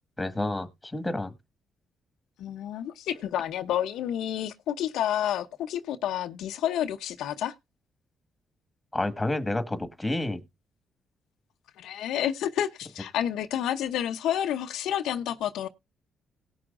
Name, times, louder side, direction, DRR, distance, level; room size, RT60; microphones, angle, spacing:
voice 1, 0.2-1.3 8.9-10.4, left 1 dB, 10° left, 1.7 m, -29 dB
voice 2, 2.4-7.5 11.8-15.7, left 10 dB, 80° left, 0.7 m, -29 dB
18.0 x 6.2 x 2.5 m
cardioid pair, 90°, 0 cm